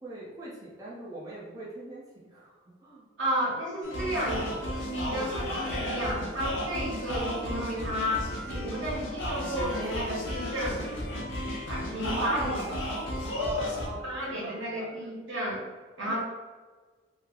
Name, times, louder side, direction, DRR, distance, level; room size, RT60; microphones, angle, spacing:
voice 1, 0.0-3.1 12.2-12.8 13.3-15.1 16.1-16.2, right 1 dB, 20° right, -7 dB, 0.6 m, -40 dB
voice 2, 3.2-10.8 11.7-12.6 14.0-15.6 16.0-16.2, equal, 75° right, -6 dB, 1.3 m, -32 dB
sound 1, 3.8-13.9, left 1 dB, 75° left, 0.8 m, -33 dB
3.2 x 2.0 x 3.7 m, 1.4 s
head